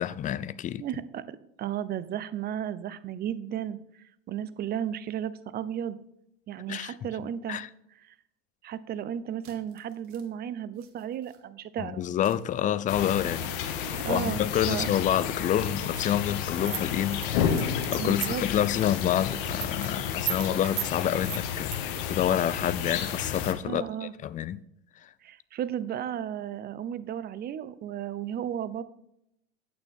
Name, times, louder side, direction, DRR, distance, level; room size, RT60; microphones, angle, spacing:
voice 1, 0.0-0.8 6.7-6.9 7.5-7.7 11.8-13.5 14.1-17.6 17.9-24.6, left 10 dB, 25° left, 0.5 m, -28 dB
voice 2, 0.8-3.8 4.3-6.0 6.5-7.6 8.1-8.2 8.6-12.0 13.9-14.9 18.0-18.4 23.6-24.1 25.2-28.8, right 10 dB, 30° right, 0.7 m, -34 dB
sound 1, 9.4-10.3 10.7-11.4 12.2-12.5 14.6-14.7 15.9-16.1 18.5-18.6 20.6-20.8, right 7 dB, 45° right, 2.2 m, -51 dB
sound 2, 12.9-23.5, left 8 dB, 60° left, 1.3 m, -31 dB
sound 3, 16.7-18.5 18.9-19.1 19.4-19.9 20.3-20.5 20.8-20.9 21.2-21.8, right 12 dB, 75° right, 1.4 m, -33 dB
9.2 x 8.8 x 3.5 m
hypercardioid pair, 90°, 30 cm